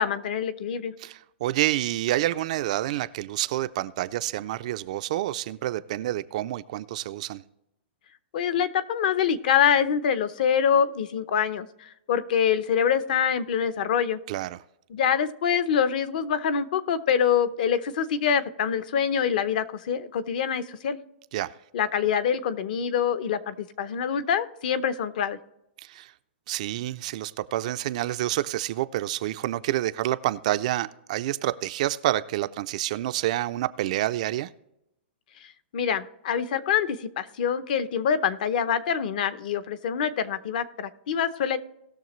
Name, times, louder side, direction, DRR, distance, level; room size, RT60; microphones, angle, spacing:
voice 1, 0.0-0.9 8.3-14.2 14.9-21.0 21.7-25.4 35.7-41.6, left 8 dB, 50° left, 0.7 m, -25 dB
voice 2, 1.0-7.4 14.3-14.6 21.3-21.5 25.8-26.1 26.5-34.5, right 14 dB, 40° right, 0.3 m, -28 dB
19.0 x 6.5 x 3.1 m
hypercardioid pair, 170°, 6 cm